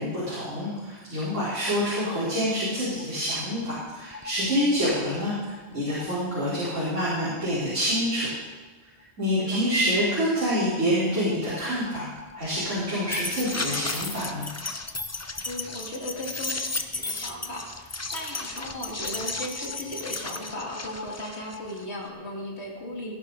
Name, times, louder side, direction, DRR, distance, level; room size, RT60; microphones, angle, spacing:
voice 1, 0.0-8.3 9.2-12.1 12.3-14.5, equal, 80° right, -11 dB, 4.6 m, -27 dB
sound 1, 3.0-3.1 3.3-3.4 3.6-6.8 7.6-7.7 7.9-8.0 8.3-8.4 10.3-10.4 10.7-10.8 11.1-22.1, left 3 dB, 20° left, 0.4 m, -35 dB
voice 2, 15.4-23.1, left 1 dB, 60° left, -2 dB, 2.9 m, -37 dB
19.0 x 10.5 x 4.1 m, 1.3 s
omnidirectional pair, 1.2 m